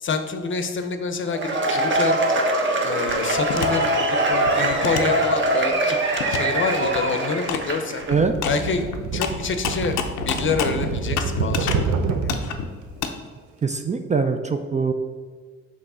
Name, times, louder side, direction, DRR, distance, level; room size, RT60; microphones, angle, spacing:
voice 1, 0.0-2.2 2.8-6.0 6.3-8.0 8.4-12.2, left 4 dB, 40° left, 8 dB, 0.7 m, -27 dB
Cheering / Applause / Crowd, 1.3-8.1, right 1 dB, 40° right, 1.1 m, -22 dB
sound 1, 3.1-3.7 4.2-5.7 6.2-6.4 6.7-7.0 7.5-7.7 7.9-11.9 12.2-13.1, left 7 dB, 85° left, 0.7 m, -29 dB
sound 2, 8.1-12.5 13.6-13.8, right 5 dB, 75° right, 0.6 m, -27 dB
voice 2, 13.6-14.9, right 4 dB, 25° right, 6 dB, 0.4 m, -22 dB
6.0 x 3.1 x 5.4 m, 1.5 s
cardioid pair, 90°, 30 cm